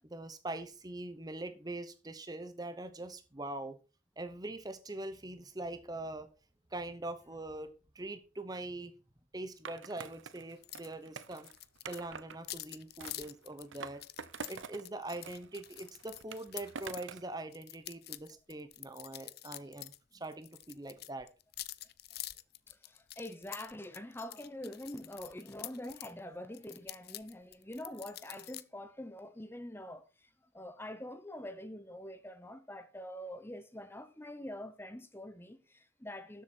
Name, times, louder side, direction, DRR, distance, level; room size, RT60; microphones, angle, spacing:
voice 1, 0.0-3.8 4.2-6.3 6.7-8.9 9.3-11.5 11.9-14.0 14.5-21.3, right 2 dB, 20° right, 0.8 m, -43 dB
Skateboard, 9.7-12.4 13.0-14.8 15.1-17.3, right 5 dB, 65° right, 0.7 m, -47 dB
sound 1, 10.6-10.9 11.1-17.0 17.5-20.0 20.2-26.1 26.5-28.6, left 16 dB, 50° left, 0.5 m, -47 dB
voice 2, 22.7-30.3 30.5-36.4, left 1 dB, 10° left, 0.9 m, -45 dB
13.0 x 7.6 x 4.4 m
head